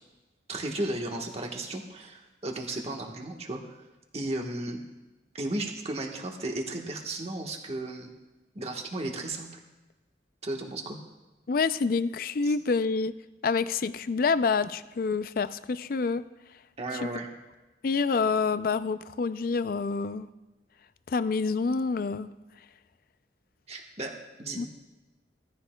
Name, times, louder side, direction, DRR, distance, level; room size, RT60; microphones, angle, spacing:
voice 1, 0.5-3.8 4.1-4.8 5.3-8.1 8.5-9.6 10.4-11.0 12.4-12.5 16.8-17.3 23.7-24.7, right 2 dB, 35° right, 2 dB, 1.3 m, -34 dB
voice 2, 11.5-13.1 13.4-16.3 17.8-20.3 21.1-22.3 24.6-24.7, left 4 dB, 55° left, 13 dB, 0.4 m, -27 dB
16.5 x 14.0 x 2.3 m, 1.1 s
head